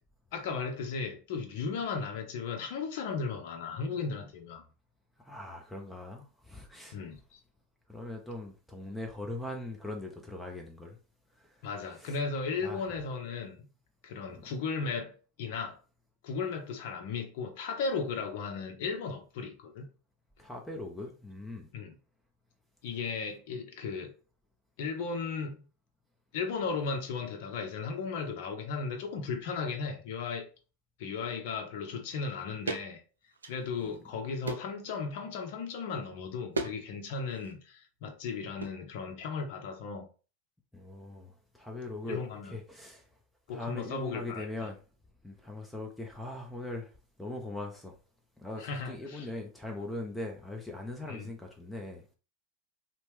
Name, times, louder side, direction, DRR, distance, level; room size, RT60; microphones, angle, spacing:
voice 1, 0.3-4.6 6.9-7.4 11.6-13.7 14.0-15.8 16.2-19.9 21.7-21.9 22.8-24.1 24.8-25.6 26.3-30.5 31.0-33.0 33.4-40.1 42.1-42.5 43.5-44.5 48.6-49.3 51.1-51.3, left 5 dB, 60° left, 0.7 m, -36 dB
voice 2, 5.2-7.0 7.9-11.0 11.3-11.7 11.9-12.2 12.6-12.9 14.3-14.4 20.4-21.7 33.8-33.9 40.7-43.1 43.5-44.8 45.2-48.0 48.4-52.2, left 2 dB, 5° left, 0.6 m, -41 dB
sound 1, 32.7-32.9 33.3-34.0 34.4-34.8 36.5-36.8 37.1-37.5 38.6-38.8, right 3 dB, 85° right, 0.3 m, -36 dB
2.8 x 2.1 x 3.1 m
hypercardioid pair, 90°, 0 cm